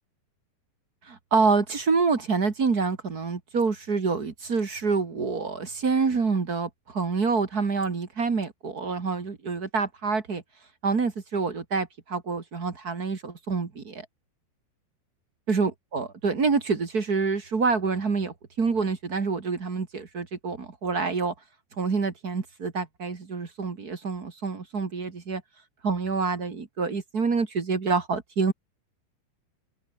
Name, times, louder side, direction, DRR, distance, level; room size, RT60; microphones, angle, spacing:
voice 1, 1.0-10.4 10.8-14.0 15.5-21.3 21.8-25.4 25.8-28.5, right 4 dB, 35° right, 1.7 m, -27 dB
open air
omnidirectional pair, 4.9 m